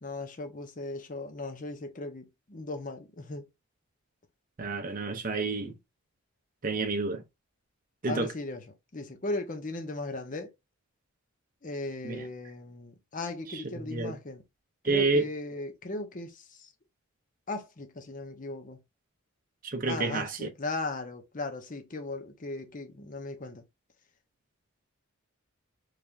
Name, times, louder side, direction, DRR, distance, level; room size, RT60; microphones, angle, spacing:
voice 1, 0.0-3.5 8.1-8.6 8.9-10.5 11.6-14.4 14.8-16.7 17.5-18.8 19.9-23.6, left 2 dB, 35° left, 0.7 m, -37 dB
voice 2, 4.6-5.7 6.6-7.2 8.0-8.3 12.0-12.2 13.5-14.1 14.8-15.2 19.6-20.5, right 3 dB, 40° right, 0.6 m, -29 dB
3.4 x 3.2 x 2.5 m
head